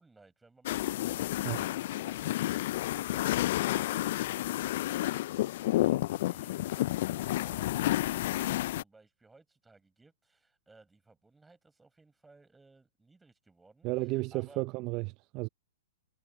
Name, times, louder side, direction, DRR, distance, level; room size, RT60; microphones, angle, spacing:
voice 1, 0.0-14.6, right 3 dB, 10° right, 7.4 m, -60 dB
sound 1, 0.7-8.8, left 15 dB, 55° left, 0.3 m, -30 dB
voice 2, 13.8-15.5, right 22 dB, 35° right, 0.6 m, -33 dB
hypercardioid pair, 125°, 0 cm